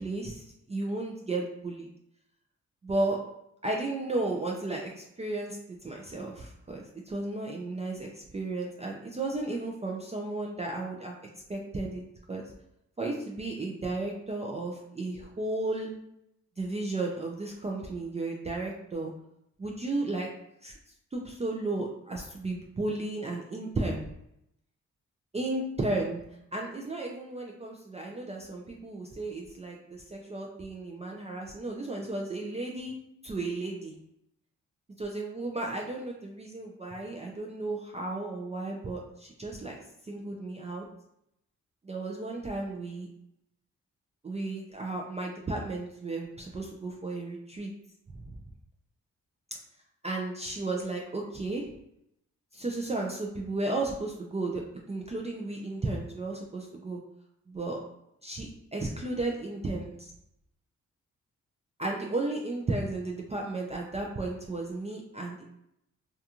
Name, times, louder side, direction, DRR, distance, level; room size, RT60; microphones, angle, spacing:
voice 1, 0.0-1.9 2.8-3.2 3.6-5.6 5.8-11.1 11.5-12.0 12.3-12.4 13.0-15.9 16.6-19.1 19.6-20.3 20.6-20.7 21.1-24.1 25.3-26.2 26.5-33.0 33.2-34.0 35.0-39.8 40.0-40.8 41.8-43.1 44.2-47.7 50.0-51.6 52.5-54.6 54.9-57.0 57.5-57.8 58.2-58.5 58.7-60.1 61.8-65.4, right 2 dB, 20° right, -1 dB, 0.4 m, -34 dB
2.4 x 2.3 x 2.8 m, 0.79 s
cardioid pair, 50°, 32 cm